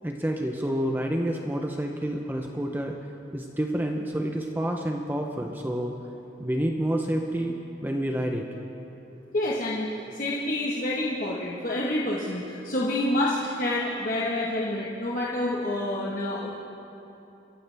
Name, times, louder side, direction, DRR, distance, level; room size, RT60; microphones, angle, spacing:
voice 1, 0.0-2.9 3.3-5.9 6.4-7.5 7.8-8.5, right 1 dB, 10° right, 2 dB, 0.6 m, -28 dB
voice 2, 9.3-16.6, left 1 dB, 45° left, -5 dB, 1.3 m, -28 dB
26.0 x 14.5 x 3.4 m, 2.9 s
head